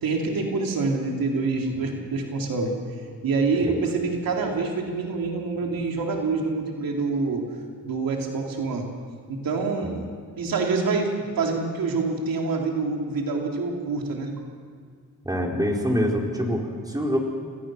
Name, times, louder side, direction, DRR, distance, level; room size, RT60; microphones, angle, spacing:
voice 1, 0.0-2.7 3.2-7.4 7.8-8.8 9.3-10.0 10.3-11.1 11.4-14.3, right 4 dB, 90° right, 1 dB, 3.2 m, -26 dB
voice 2, 15.2-17.2, equal, 10° right, -1 dB, 4.6 m, -25 dB
28.5 x 20.5 x 6.3 m, 2.1 s
cardioid pair, 85°, 34 cm